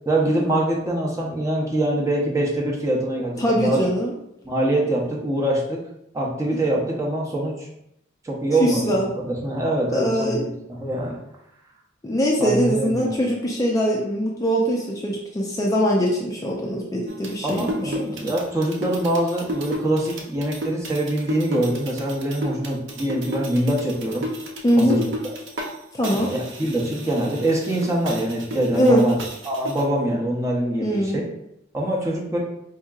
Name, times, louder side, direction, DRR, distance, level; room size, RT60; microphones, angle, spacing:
voice 1, 0.1-3.8 4.4-5.8 6.1-7.7 8.2-10.4 10.7-11.2 12.4-13.2 17.4-24.3 24.8-25.1 26.1-31.3 31.7-32.4, right 1 dB, 15° right, -3 dB, 0.7 m, -24 dB
voice 2, 3.4-4.1 8.6-9.1 9.9-10.5 12.0-18.3 24.6-25.0 25.9-26.3 28.7-29.1 30.8-31.2, equal, 20° left, -2 dB, 0.4 m, -22 dB
sound 1, 17.1-25.7 26.0-29.8, equal, 65° right, 0.6 m, -33 dB
4.4 x 2.9 x 2.4 m, 0.80 s
head